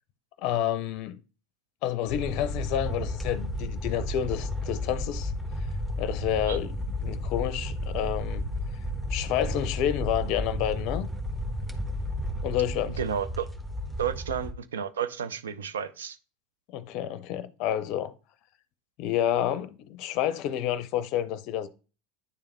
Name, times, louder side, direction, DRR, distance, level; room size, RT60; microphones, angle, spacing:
voice 1, 0.4-1.2 1.8-5.3 6.0-6.8 7.0-8.5 9.1-11.1 12.4-13.0 16.7-18.1 19.0-21.7, left 11 dB, 55° left, 0.5 m, -29 dB
sound 1, 2.1-14.5, left 1 dB, 5° right, 1.0 m, -33 dB
voice 2, 13.0-13.5 14.0-16.2, right 8 dB, 85° right, 0.5 m, -31 dB
9.4 x 3.5 x 3.3 m
hypercardioid pair, 85°, 0 cm